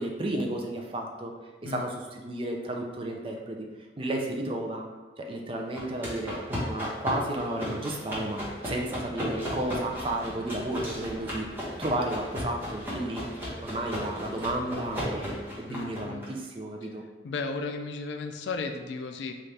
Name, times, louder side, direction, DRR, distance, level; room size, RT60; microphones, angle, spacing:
voice 1, 0.0-1.3 1.6-3.7 4.0-4.9 5.2-13.3 13.6-17.0, right 1 dB, 30° right, 1 dB, 0.4 m, -33 dB
sound 1, 5.8-16.2, equal, 10° right, 0.9 m, -36 dB
sound 2, 8.3-15.5, right 1 dB, 65° left, 0.9 m, -48 dB
voice 2, 15.7-16.3 17.2-19.3, left 4 dB, 80° left, 6 dB, 0.4 m, -35 dB
3.3 x 2.4 x 4.1 m, 1.2 s
head